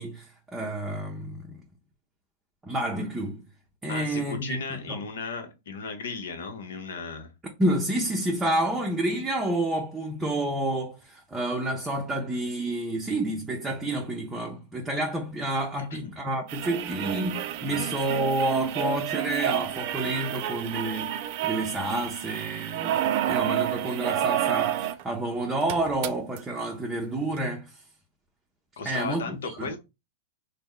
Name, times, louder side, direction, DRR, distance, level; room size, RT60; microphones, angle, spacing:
voice 1, 0.0-1.6 2.6-3.4 3.8-5.0 7.6-21.1 21.4-27.8 28.8-29.7, right 1 dB, 15° right, 0.6 m, -29 dB
voice 2, 3.9-7.3 15.8-16.1 17.6-17.9 28.8-29.8, left 4 dB, 80° left, 0.8 m, -36 dB
sound 1, 16.5-25.0 25.3-25.4 25.6-26.4 27.4-27.5, right 11 dB, 55° right, 0.4 m, -29 dB
3.0 x 2.1 x 3.6 m
hypercardioid pair, 115°, 0 cm